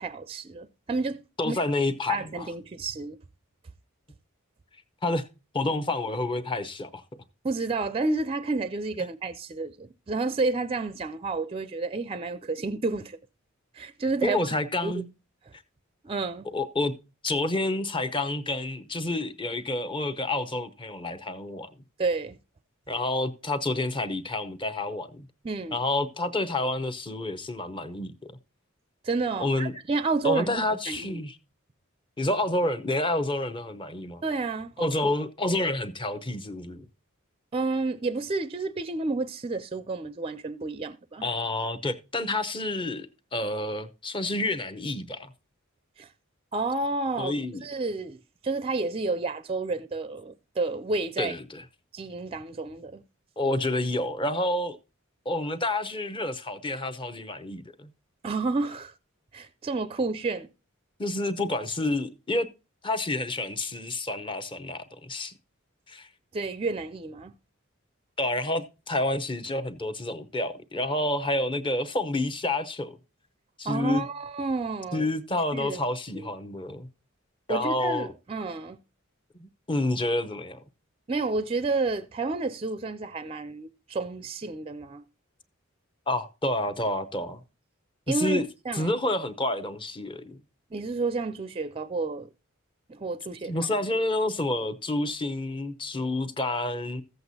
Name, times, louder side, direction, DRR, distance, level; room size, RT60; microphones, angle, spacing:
voice 1, 0.0-1.2 1.4-1.6 2.1-3.2 7.4-13.2 13.7-14.4 14.8-15.0 16.0-16.5 22.0-22.4 25.4-25.8 29.0-31.2 34.2-34.7 35.0-35.1 37.5-41.3 46.0-46.1 46.5-47.4 47.6-51.3 51.9-53.0 58.2-58.9 59.3-60.5 66.3-67.3 73.6-75.1 75.5-75.8 76.1-76.3 77.5-78.8 81.1-85.0 88.1-88.9 90.7-92.3 92.9-93.5, right 3 dB, 25° right, 0.4 m, -30 dB
voice 2, 1.4-2.5 5.0-5.2 5.5-7.0 14.2-15.1 16.5-16.9 17.2-21.7 22.9-25.3 25.7-28.3 29.4-29.7 30.2-31.4 32.2-34.2 34.8-36.8 41.2-45.3 47.2-47.6 51.2-51.6 53.4-54.8 55.3-57.9 61.0-62.5 62.8-65.3 65.9-66.1 68.2-73.0 73.6-74.0 74.9-76.9 77.5-78.1 79.4-80.6 86.1-87.4 88.1-88.5 88.7-90.4 93.4-97.0, left 2 dB, 25° left, 0.7 m, -29 dB
14.5 x 7.9 x 2.7 m
head